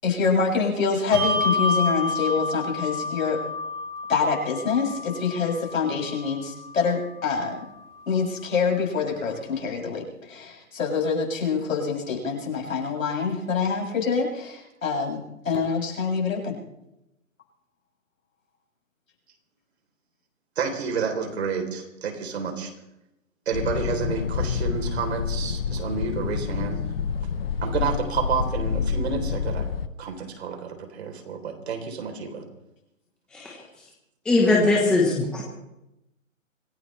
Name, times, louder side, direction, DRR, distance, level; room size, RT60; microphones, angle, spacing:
voice 1, 0.0-3.4 4.1-7.6 8.1-16.6, left 5 dB, 75° left, -1 dB, 7.5 m, -26 dB
Bell, 1.1-8.0, left 2 dB, 90° right, 5.3 m, -30 dB
voice 2, 20.6-22.7 23.5-26.8 27.6-29.7 30.0-32.4, right 5 dB, 50° right, 4 dB, 3.8 m, -30 dB
sound 1, 23.5-29.9, left 6 dB, 45° left, 1.0 m, -28 dB
voice 3, 34.2-35.4, left 2 dB, ahead, -3 dB, 1.1 m, -20 dB
26.0 x 16.0 x 3.3 m, 0.87 s
hypercardioid pair, 165°, 41 cm